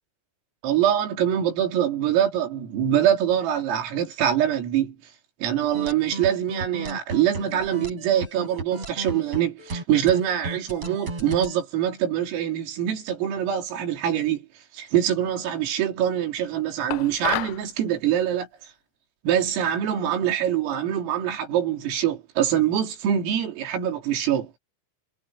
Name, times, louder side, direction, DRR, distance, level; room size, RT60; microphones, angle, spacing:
voice 1, 0.6-5.0 5.4-14.5 14.7-18.5 19.2-24.6, right 10 dB, 80° right, 6.0 m, -24 dB
sound 1, 5.7-11.6, right 3 dB, 30° right, 6.0 m, -34 dB
sound 2, 16.9-17.6, left 17 dB, 85° left, 2.5 m, -30 dB
omnidirectional pair, 5.9 m